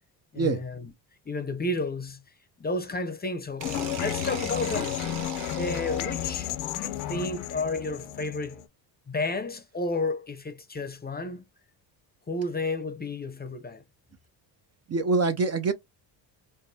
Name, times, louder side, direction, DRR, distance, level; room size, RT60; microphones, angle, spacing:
voice 1, 0.3-0.9 1.3-2.2 2.6-5.0 5.6-8.6 9.1-11.4 12.3-13.8, left 2 dB, 20° left, 0.7 m, -32 dB
sound 1, 3.6-8.6, left 11 dB, 80° left, 0.8 m, -32 dB
sound 2, 3.6-6.5, right 9 dB, 60° right, 1.0 m, -40 dB
voice 2, 14.9-15.7, right 4 dB, 35° right, 0.5 m, -24 dB
4.6 x 2.2 x 2.7 m
cardioid pair, 100°, 49 cm